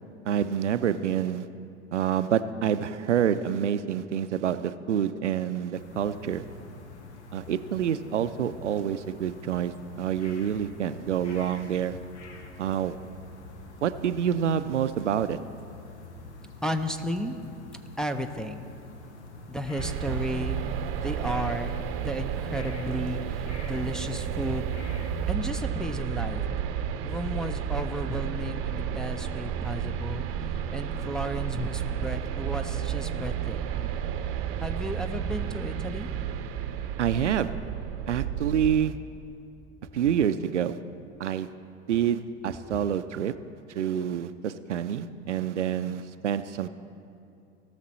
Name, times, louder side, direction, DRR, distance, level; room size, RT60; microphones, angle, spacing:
voice 1, 0.3-1.5 1.9-6.4 7.3-12.0 12.6-13.0 13.8-15.4 37.0-37.5 38.1-38.9 39.9-40.8 41.2-41.5 41.9-43.3 43.8-46.7, right 9 dB, 85° right, 12 dB, 0.5 m, -27 dB
sound 1, 5.7-25.4, left 3 dB, 75° left, 1.2 m, -46 dB
voice 2, 16.6-17.4 18.0-18.7 19.5-21.7 22.0-25.0 25.3-26.4 27.0-30.3 30.7-34.0 34.6-36.1, equal, ahead, 4 dB, 0.5 m, -33 dB
sound 2, 19.8-38.8, right 9 dB, 40° right, 0.7 m, -32 dB
18.0 x 6.6 x 4.2 m, 2.6 s
figure-of-eight pair, 80°, 35 cm